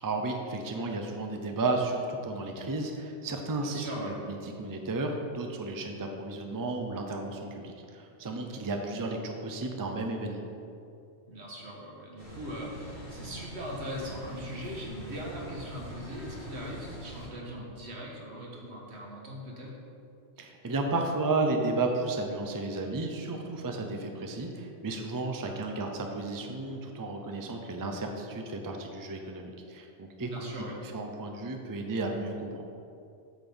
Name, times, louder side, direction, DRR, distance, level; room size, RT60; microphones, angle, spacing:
voice 1, 0.0-10.4 20.4-30.6 30.9-32.5, right 2 dB, 25° right, 3 dB, 0.5 m, -33 dB
voice 2, 3.6-4.2 8.5-8.6 11.3-19.8 30.2-30.8, equal, 75° right, -2 dB, 1.7 m, -40 dB
sound 1, 12.2-17.3, right 1 dB, 70° left, 2.2 m, -44 dB
8.6 x 4.0 x 7.0 m, 2.5 s
omnidirectional pair, 1.1 m